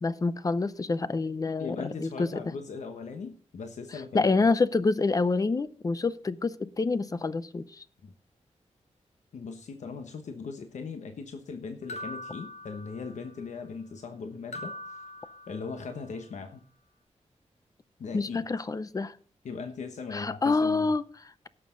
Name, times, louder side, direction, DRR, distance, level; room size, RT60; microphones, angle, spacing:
voice 1, 0.0-2.4 3.9-7.8 18.1-19.2 20.1-21.5, left 3 dB, 30° left, 15 dB, 0.6 m, -27 dB
voice 2, 1.6-4.3 8.0-8.1 9.3-15.0 15.5-16.6 18.0-18.5 19.4-20.9, left 5 dB, 80° left, 6 dB, 1.1 m, -39 dB
sound 1, 11.9-13.4 14.5-16.0, left 1 dB, 65° left, 1.5 m, -42 dB
17.0 x 6.7 x 3.8 m, 0.44 s
wide cardioid pair, 150°, 12 cm